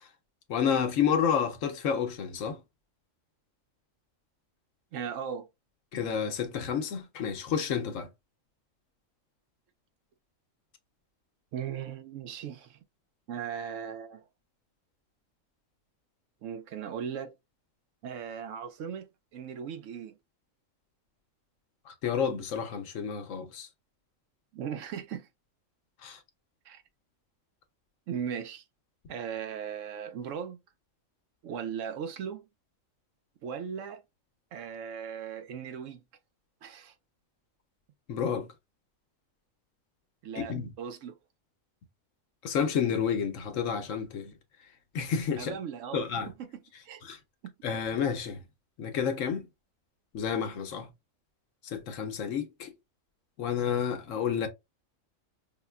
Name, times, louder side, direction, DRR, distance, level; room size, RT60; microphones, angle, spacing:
voice 1, 0.5-2.6 5.9-8.1 21.9-23.7 26.0-26.2 38.1-38.5 40.4-40.7 42.4-44.3 44.9-45.5 45.9-46.3 47.0-47.2 47.6-48.4 48.8-49.5 50.1-50.9 51.6-52.7 53.4-54.5, left 7 dB, 75° left, 1.0 m, -30 dB
voice 2, 4.9-5.5 11.5-12.8 13.3-14.2 16.4-17.3 18.0-20.2 24.5-25.3 26.7-26.8 28.1-28.6 29.1-30.6 31.4-32.4 33.4-34.0 34.5-36.0 36.6-36.9 40.2-41.2 45.4-46.1 46.4-47.0 47.4-47.5, right 8 dB, 75° right, 0.9 m, -38 dB
5.6 x 2.2 x 2.2 m
omnidirectional pair, 1.4 m